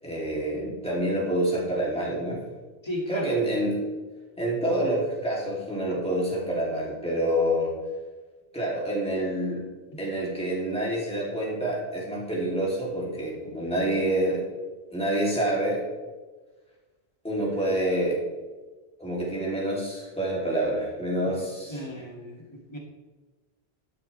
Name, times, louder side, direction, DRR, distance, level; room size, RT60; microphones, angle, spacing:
voice 1, 0.0-2.4 3.1-3.8 4.4-7.7 8.5-9.6 10.0-14.4 14.9-15.8 17.2-18.2 19.0-21.8, right 1 dB, 5° left, -5 dB, 3.1 m, -27 dB
voice 2, 2.8-3.4 9.9-10.0 21.2-22.8, left 1 dB, 25° left, -2 dB, 2.5 m, -36 dB
12.5 x 10.5 x 3.4 m, 1.3 s
omnidirectional pair, 1.1 m